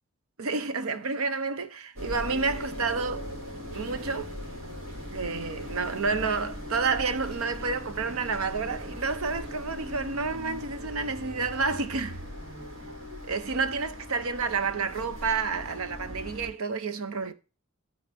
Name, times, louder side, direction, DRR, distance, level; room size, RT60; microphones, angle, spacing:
voice 1, 0.4-3.3 3.7-4.3 5.1-12.2 13.2-17.3, right 4 dB, 85° right, 0.8 m, -30 dB
sound 1, 2.0-16.5, equal, 65° right, 3.1 m, -39 dB
12.0 x 4.0 x 3.4 m
head